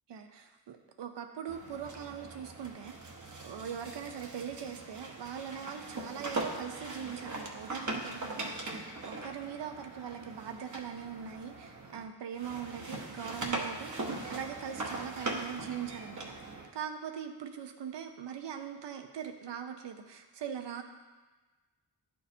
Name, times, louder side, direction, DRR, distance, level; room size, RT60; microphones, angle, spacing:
voice 1, 0.1-3.2 3.4-16.2 16.7-20.8, right 8 dB, 75° right, 6 dB, 0.7 m, -41 dB
sound 1, 1.5-12.0 12.3-16.7, right 2 dB, 45° right, 1.0 m, -40 dB
10.5 x 4.6 x 2.7 m, 1.2 s
cardioid pair, 75°, 42 cm